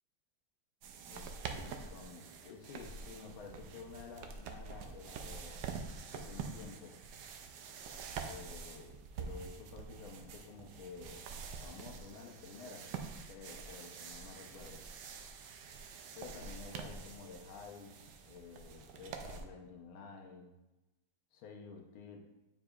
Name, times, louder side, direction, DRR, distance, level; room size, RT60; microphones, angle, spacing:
sound 1, 0.8-19.4, right 5 dB, 70° right, 1.1 m, -46 dB
voice 1, 1.1-5.6 6.1-7.0 8.2-11.3 11.6-12.9 13.3-14.8 16.2-20.5 21.3-22.2, left 5 dB, 80° left, 2 dB, 1.7 m, -51 dB
8.9 x 4.7 x 2.4 m, 1.0 s
omnidirectional pair, 2.2 m